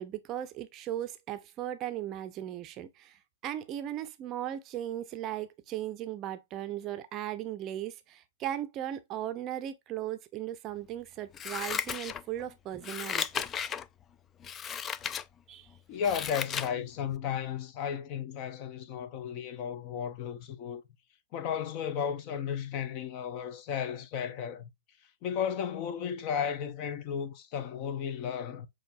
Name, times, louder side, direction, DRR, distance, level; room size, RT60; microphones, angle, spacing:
voice 1, 0.0-13.5 15.5-15.7, right 12 dB, 30° right, 0.6 m, -37 dB
Scissors, 11.3-12.4 12.8-13.9 14.4-15.2 15.7-16.7 17.1-17.2, left 8 dB, 20° left, 0.3 m, -35 dB
voice 2, 15.9-20.8 21.3-24.7 25.2-28.7, left 8 dB, 40° left, 0.8 m, -34 dB
6.5 x 3.1 x 2.5 m
figure-of-eight pair, 115°, 0 cm